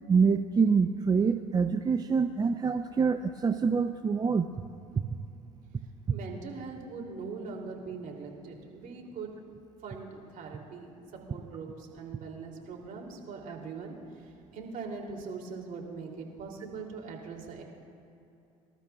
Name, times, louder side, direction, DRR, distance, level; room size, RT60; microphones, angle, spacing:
voice 1, 0.1-4.5, right 5 dB, 25° right, 8 dB, 0.5 m, -25 dB
voice 2, 6.1-9.3 9.8-17.6, right 4 dB, 55° right, 0 dB, 2.8 m, -41 dB
26.0 x 12.5 x 2.3 m, 2.7 s
hypercardioid pair, 70°, 16 cm